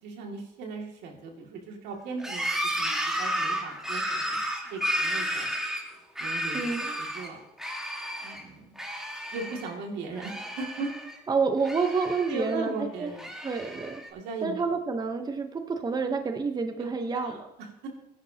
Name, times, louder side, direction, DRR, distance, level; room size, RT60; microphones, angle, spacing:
voice 1, 0.0-2.5 2.8-4.4 4.7-5.5 6.2-7.4 8.2-8.8 9.3-10.9 12.3-13.3 14.1-14.6 16.8-17.9, right 3 dB, 85° right, 1 dB, 2.3 m, -38 dB
sound 1, 2.2-7.3 7.6-8.4 8.8-9.7 10.0-11.2 11.6-12.6 13.1-14.1, equal, 5° right, 1.7 m, -32 dB
voice 2, 6.5-7.0 11.3-12.7 13.0-13.1 13.4-14.0 14.4-17.3, right 4 dB, 25° right, 6 dB, 0.9 m, -28 dB
16.5 x 10.5 x 2.8 m, 0.88 s
cardioid pair, 110°, 17 cm